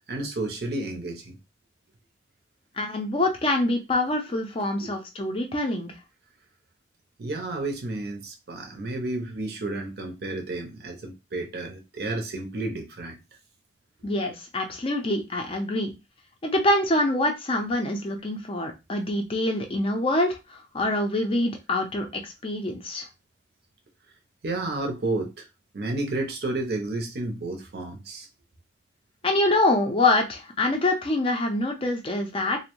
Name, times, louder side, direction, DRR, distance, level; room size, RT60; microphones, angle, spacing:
voice 1, 0.1-1.4 4.8-4.9 7.2-13.2 24.4-25.5 25.7-28.3, right 2 dB, 55° right, 0.6 m, -31 dB
voice 2, 2.8-5.9 14.0-15.9 16.4-23.1 29.2-32.6, left 2 dB, 30° left, 0.4 m, -25 dB
2.5 x 2.1 x 2.9 m
head